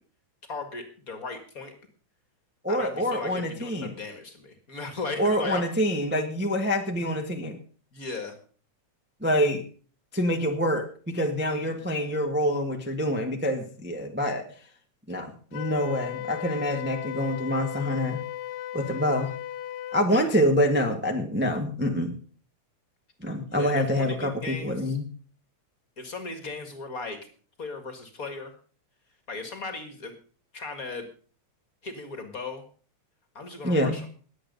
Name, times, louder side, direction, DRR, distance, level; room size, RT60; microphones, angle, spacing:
voice 1, 0.5-1.7 2.7-5.6 7.9-8.4 11.5-11.8 18.8-19.0 23.5-25.0 26.0-27.2 27.6-28.5 29.3-30.1 30.5-31.1 31.8-32.6 33.4-34.1, left 3 dB, 35° left, 8 dB, 1.7 m, -37 dB
voice 2, 2.6-3.9 5.2-7.6 9.2-9.6 10.1-14.4 15.1-18.2 18.7-19.3 19.9-22.1 23.2-25.0 33.6-34.0, equal, 10° right, 3 dB, 0.5 m, -26 dB
Wind instrument woodwind instrument, 15.5-20.1, left 13 dB, 75° left, 2.3 m, -36 dB
20.0 x 8.0 x 5.4 m, 0.42 s
omnidirectional pair, 3.5 m